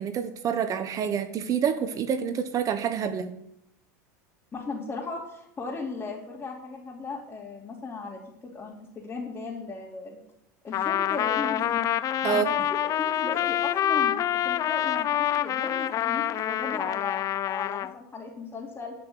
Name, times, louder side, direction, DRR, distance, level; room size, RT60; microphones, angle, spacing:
voice 1, 0.0-3.3 12.2-12.5, right 7 dB, 35° right, 9 dB, 1.2 m, -27 dB
voice 2, 4.5-8.2 8.5-10.2 10.6-11.8 12.3-12.4 12.8-14.1 14.4-18.9, left 3 dB, 20° left, -6 dB, 3.4 m, -37 dB
Trumpet, 10.7-17.9, left 11 dB, 40° left, 0.6 m, -27 dB
13.0 x 6.0 x 9.4 m, 0.78 s
supercardioid pair, 110°, 9 cm